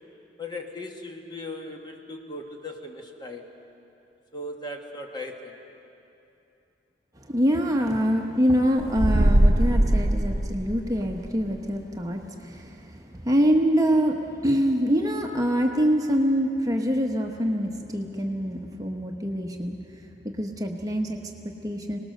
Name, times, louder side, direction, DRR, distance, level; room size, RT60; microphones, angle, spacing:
voice 1, 0.4-3.5 4.3-5.6, left 1 dB, 25° left, 2 dB, 1.5 m, -38 dB
voice 2, 7.3-19.7 20.2-22.0, equal, 20° right, 2 dB, 1.0 m, -25 dB
sound 1, 8.8-11.3, right 1 dB, 50° right, 0.9 m, -21 dB
25.0 x 19.0 x 6.6 m, 2.9 s
head